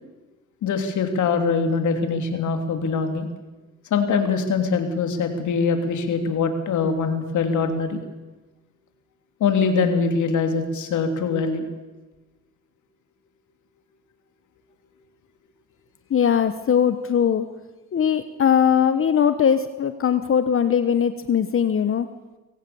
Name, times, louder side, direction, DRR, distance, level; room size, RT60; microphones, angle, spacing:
voice 1, 0.6-3.3 3.9-8.0 9.4-11.6, left 5 dB, 75° left, 6 dB, 3.1 m, -23 dB
voice 2, 16.1-17.5 17.9-22.1, left 8 dB, 45° left, 11 dB, 1.1 m, -20 dB
24.5 x 17.5 x 7.1 m, 1.1 s
cardioid pair, 90°, 30 cm